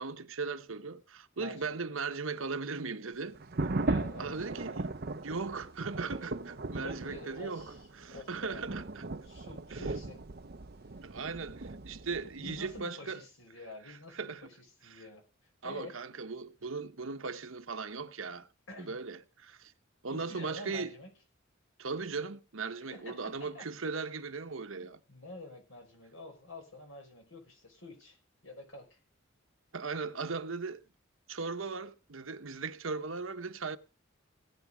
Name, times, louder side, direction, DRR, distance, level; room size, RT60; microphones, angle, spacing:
voice 1, 0.0-3.4 3.6-3.7 4.2-4.9 5.2-9.1 9.7-9.8 11.0-13.2 13.8-14.5 14.8-15.0 15.6-18.5 18.8-19.7 20.0-20.9 21.8-25.0 29.7-30.8 31.3-33.8, right 4 dB, 80° right, 1.0 m, -38 dB
voice 2, 1.4-1.8 3.8-4.9 6.8-8.7 9.2-10.2 12.4-14.6 14.8-15.2 15.6-16.0 18.7-19.0 20.1-21.1 22.9-23.7 24.8-28.2 28.4-29.0, left 2 dB, 75° left, 5.6 m, -48 dB
sound 1, 3.3-12.8, right 2 dB, 50° right, 0.8 m, -38 dB
18.5 x 8.5 x 5.1 m
head